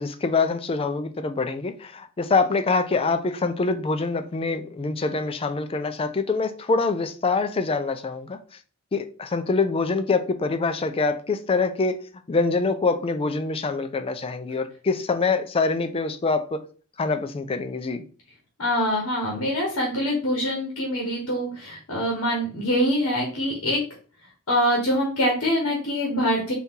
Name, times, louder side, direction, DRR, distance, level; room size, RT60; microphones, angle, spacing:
voice 1, 0.0-8.4 8.9-12.0 12.3-16.6 17.0-18.0, left 4 dB, 25° left, 0.4 m, -25 dB
voice 2, 18.6-23.8 24.5-26.5, equal, 70° left, 1.2 m, -24 dB
4.2 x 2.8 x 3.6 m
head